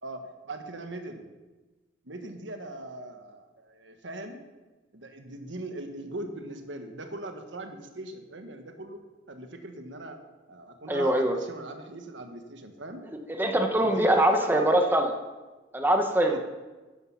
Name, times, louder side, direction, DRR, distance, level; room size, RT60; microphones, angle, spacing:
voice 1, 0.0-1.3 2.0-4.4 4.9-10.2 10.5-13.0 13.8-14.8 16.3-16.4, right 2 dB, 80° right, 6 dB, 1.4 m, -40 dB
voice 2, 10.9-11.3 13.3-15.1 15.7-16.4, right 1 dB, 10° right, 4 dB, 1.0 m, -23 dB
11.0 x 9.8 x 5.9 m, 1.2 s
head